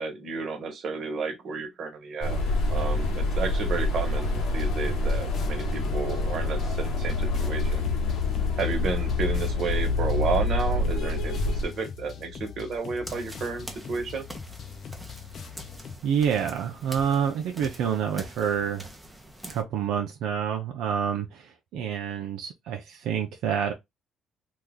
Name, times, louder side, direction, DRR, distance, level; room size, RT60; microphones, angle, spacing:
voice 1, 0.0-2.4 2.7-7.8 8.6-14.2, right 4 dB, 55° right, 1.2 m, -32 dB
sound 1, 2.2-11.6, left 2 dB, 85° left, 1.2 m, -26 dB
sound 2, 4.2-16.0, left 7 dB, 50° left, 0.6 m, -42 dB
sound 3, 13.0-19.6, right 1 dB, 5° right, 0.8 m, -44 dB
voice 2, 16.0-18.9 19.5-23.7, right 8 dB, 80° right, 0.6 m, -28 dB
3.0 x 2.4 x 3.6 m
cardioid pair, 110°, 0 cm